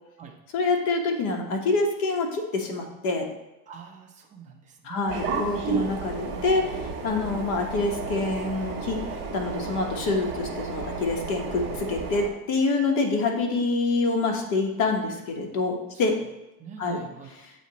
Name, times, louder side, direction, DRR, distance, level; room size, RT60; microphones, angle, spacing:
voice 1, 0.5-3.3 4.8-9.0 9.3-16.1 16.8-17.0, left 3 dB, 40° left, 1 dB, 1.2 m, -26 dB
voice 2, 3.7-5.2 16.6-17.3, right 6 dB, 15° right, 2 dB, 0.5 m, -44 dB
sound 1, 5.1-12.3, right 4 dB, 50° right, 1.4 m, -32 dB
8.3 x 2.8 x 4.0 m, 0.98 s
supercardioid pair, 140°, 46 cm